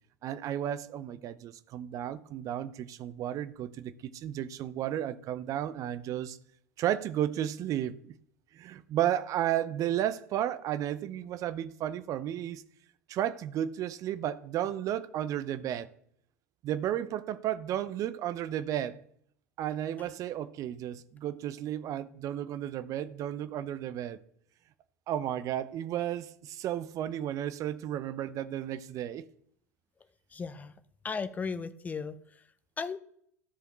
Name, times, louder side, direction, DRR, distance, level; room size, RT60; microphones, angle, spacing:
voice 1, 0.2-6.4 6.8-8.2 8.5-12.6 13.1-15.9 16.6-19.0 19.6-24.2 25.1-29.3, right 11 dB, 40° right, 0.6 m, -33 dB
voice 2, 30.3-30.7 31.0-32.4 32.8-33.0, left 5 dB, 15° left, 0.6 m, -36 dB
14.0 x 4.9 x 3.2 m
figure-of-eight pair, 80°, 9 cm